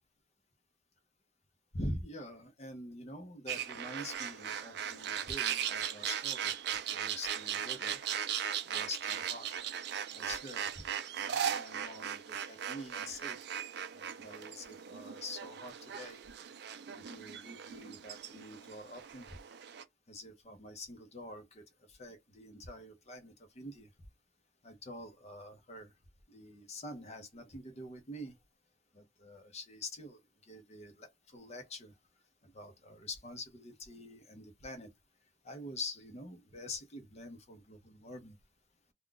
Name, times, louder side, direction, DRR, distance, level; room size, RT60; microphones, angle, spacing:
voice 1, 1.7-6.6 6.9-8.0 8.6-9.5 10.1-10.9 11.1-13.6 13.9-16.2 16.9-19.3 20.1-23.9 24.6-25.9 26.3-28.4 28.9-31.9 32.4-34.9 35.4-38.4, left 1 dB, 35° left, 0.8 m, -46 dB
sound 1, 3.5-19.8, right 9 dB, 60° right, 0.4 m, -38 dB
2.3 x 2.3 x 3.8 m
head